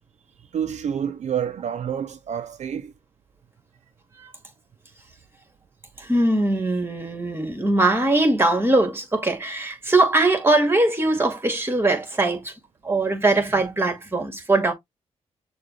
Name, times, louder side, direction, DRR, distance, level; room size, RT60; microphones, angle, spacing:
voice 1, 0.5-2.9, right 8 dB, 65° right, 0.5 m, -28 dB
voice 2, 6.0-12.5 12.8-14.7, right 2 dB, 20° right, 2.1 m, -21 dB
6.6 x 2.4 x 3.1 m
cardioid pair, 65°, 13 cm